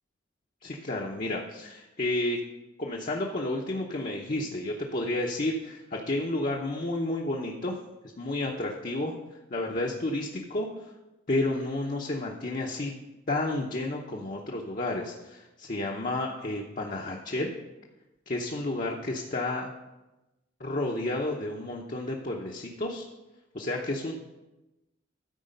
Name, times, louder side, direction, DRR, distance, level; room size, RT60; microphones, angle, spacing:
voice 1, 0.6-2.4 2.8-7.8 8.2-9.2 9.5-10.7 11.3-12.9 13.3-17.5 18.3-19.7 20.6-23.0 23.5-24.1, left 2 dB, 40° left, -1 dB, 0.8 m, -31 dB
13.0 x 4.7 x 5.3 m, 1.0 s
head